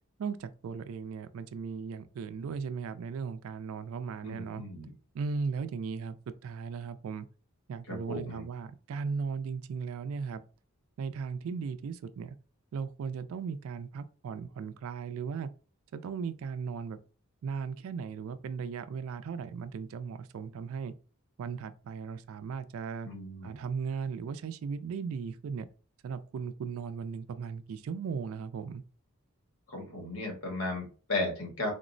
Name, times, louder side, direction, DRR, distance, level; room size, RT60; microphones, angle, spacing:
voice 1, 0.2-4.6 5.1-7.3 7.7-10.4 11.0-12.4 12.7-15.5 15.9-17.0 17.4-20.9 21.4-23.1 23.4-25.7 26.0-28.8, right 5 dB, 70° right, 0.3 m, -37 dB
voice 2, 4.2-4.9 7.9-8.4 23.0-23.6 29.7-31.7, left 2 dB, 80° left, 1.3 m, -35 dB
3.5 x 2.0 x 2.5 m
head